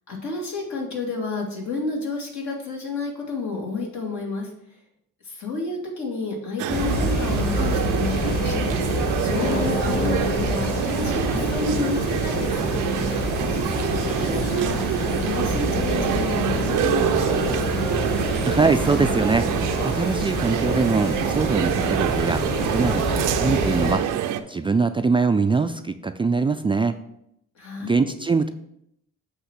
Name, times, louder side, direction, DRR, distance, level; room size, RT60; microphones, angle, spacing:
voice 1, 0.1-4.5 5.2-12.6 13.4-17.6 27.6-28.0, left 3 dB, 70° left, -2 dB, 2.4 m, -30 dB
sound 1, 6.6-24.4, right 11 dB, 85° right, 0.6 m, -26 dB
sound 2, 6.7-24.0, left 1 dB, 35° left, 1.6 m, -27 dB
voice 2, 18.5-19.5 19.8-24.0 24.5-26.9 27.8-28.5, right 4 dB, 20° right, 8 dB, 0.3 m, -22 dB
8.0 x 3.1 x 6.1 m, 0.77 s
cardioid pair, 90°, 30 cm